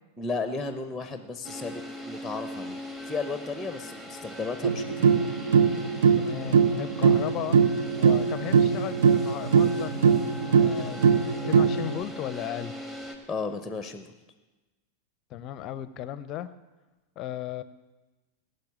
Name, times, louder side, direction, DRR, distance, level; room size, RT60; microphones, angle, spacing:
voice 1, 0.2-2.8 3.1-5.3 13.3-14.1, left 4 dB, 5° left, 9 dB, 0.9 m, -34 dB
sound 1, 1.4-13.2, equal, 15° right, 2.2 m, -40 dB
sound 2, 4.6-12.0, right 6 dB, 60° right, 0.6 m, -22 dB
voice 2, 6.2-12.8 15.3-16.5 17.2-17.6, left 12 dB, 35° left, 15 dB, 0.6 m, -36 dB
17.5 x 6.7 x 9.6 m, 1.2 s
figure-of-eight pair, 90°, 0 cm